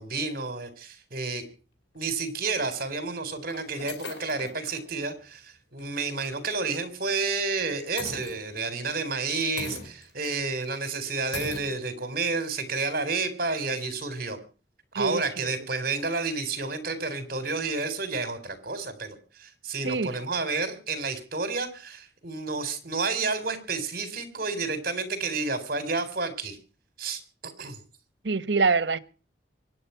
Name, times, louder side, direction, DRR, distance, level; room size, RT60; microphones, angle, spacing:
voice 1, 0.0-1.4 1.9-14.4 14.9-26.6 27.0-27.8, right 3 dB, 55° right, 4.0 m, -30 dB
sound 1, 1.9-2.0 2.8-2.9 3.4-4.9 5.3-5.4 5.8-5.9 8.0-8.8 9.6-10.3 10.6-10.7 11.3-11.8, left 3 dB, 90° left, 4.3 m, -39 dB
voice 2, 14.9-15.5 19.8-20.1 28.2-29.0, right 4 dB, 75° right, 1.1 m, -25 dB
24.5 x 9.8 x 5.8 m
head